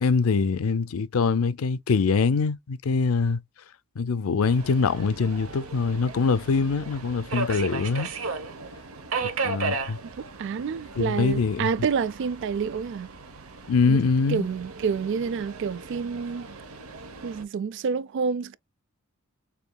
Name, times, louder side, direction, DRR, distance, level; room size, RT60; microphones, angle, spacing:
voice 1, 0.0-3.4 4.0-8.1 9.2-10.0 11.0-11.7 13.7-14.5, left 4 dB, 85° left, 0.5 m, -24 dB
Subway metro underground, 4.4-17.4, right 4 dB, 80° right, 0.8 m, -36 dB
voice 2, 10.4-13.1 13.9-14.0 14.3-16.5 17.2-18.6, right 6 dB, 60° right, 0.3 m, -28 dB
6.7 x 2.7 x 2.2 m
head